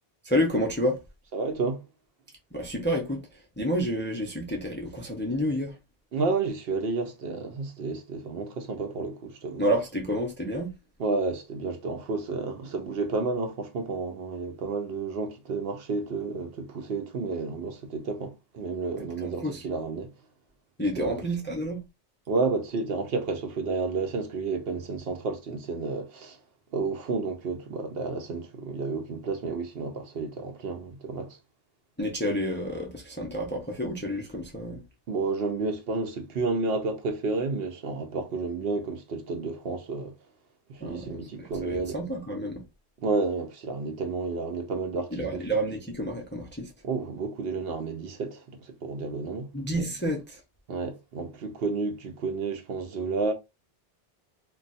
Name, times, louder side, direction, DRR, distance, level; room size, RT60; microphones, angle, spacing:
voice 1, 0.2-1.0 2.5-5.8 9.6-10.7 19.0-19.6 20.8-21.8 32.0-34.8 40.8-42.6 45.1-46.7 49.5-50.4, equal, 15° left, 0.5 m, -29 dB
voice 2, 1.3-1.8 6.1-9.7 11.0-20.1 20.9-21.2 22.3-26.4 26.7-31.4 35.1-40.1 40.7-42.0 43.0-45.6 46.8-49.5 50.7-53.3, right 4 dB, 65° right, 0.8 m, -31 dB
2.3 x 2.3 x 4.0 m
omnidirectional pair, 1.1 m